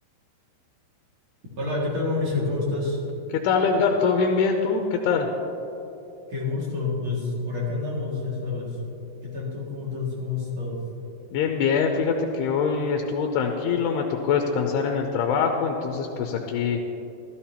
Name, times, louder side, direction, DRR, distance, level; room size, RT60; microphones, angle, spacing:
voice 1, 1.6-3.0 6.3-8.8 9.2-10.8, left 3 dB, 40° right, -5 dB, 2.2 m, -28 dB
voice 2, 3.3-5.3 11.3-16.8, left 5 dB, 80° left, 3 dB, 2.6 m, -23 dB
15.0 x 13.5 x 2.9 m, 2.9 s
omnidirectional pair, 4.9 m